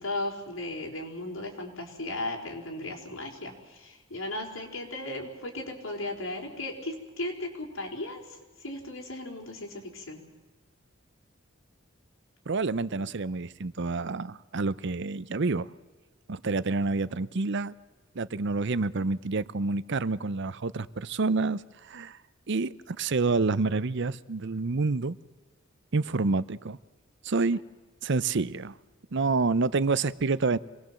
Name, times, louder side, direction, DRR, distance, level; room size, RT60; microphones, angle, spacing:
voice 1, 0.0-10.2, left 2 dB, 85° left, 1 dB, 4.7 m, -36 dB
voice 2, 12.5-15.7 16.3-17.7 18.1-22.2 22.5-25.2 25.9-26.8 27.2-27.6 28.0-28.7 29.1-30.6, right 3 dB, 60° right, 17 dB, 0.7 m, -28 dB
26.0 x 20.0 x 7.7 m, 1.2 s
head